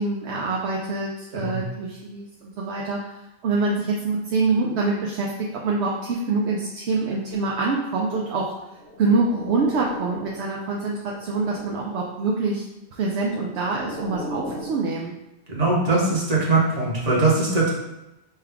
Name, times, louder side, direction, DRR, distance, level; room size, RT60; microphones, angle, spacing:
voice 1, 0.0-3.1 3.4-8.5 9.0-12.6 12.9-15.1, right 3 dB, 80° right, -3 dB, 0.9 m, -25 dB
sound 1, 8.7-10.5 10.9-12.1 13.0-14.8, left 1 dB, 55° left, 1.2 m, -38 dB
voice 2, 15.5-17.7, right 3 dB, 35° right, -5 dB, 1.2 m, -21 dB
5.7 x 2.3 x 3.4 m, 0.94 s
omnidirectional pair, 1.1 m